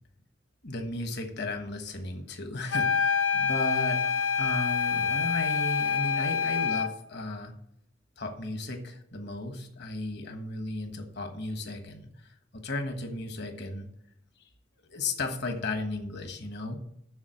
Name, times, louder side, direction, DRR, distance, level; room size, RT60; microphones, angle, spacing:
voice 1, 0.6-7.5 8.2-13.9 14.9-16.8, left 2 dB, 55° left, 6 dB, 1.3 m, -35 dB
sound 1, 2.7-7.0, left 6 dB, 85° left, 0.8 m, -27 dB
7.3 x 6.7 x 7.7 m, 0.76 s
head